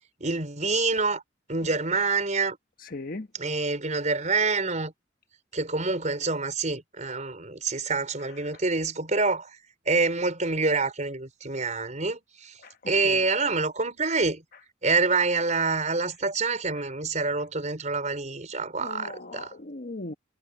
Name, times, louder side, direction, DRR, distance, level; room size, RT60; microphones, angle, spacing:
voice 1, 0.2-1.2 1.5-2.6 3.4-4.9 5.5-9.5 9.8-12.5 12.9-14.4 14.8-19.5, right 3 dB, 40° right, 4.9 m, -26 dB
voice 2, 2.9-3.3 12.6-13.2 18.8-20.1, left 2 dB, 50° left, 1.3 m, -38 dB
head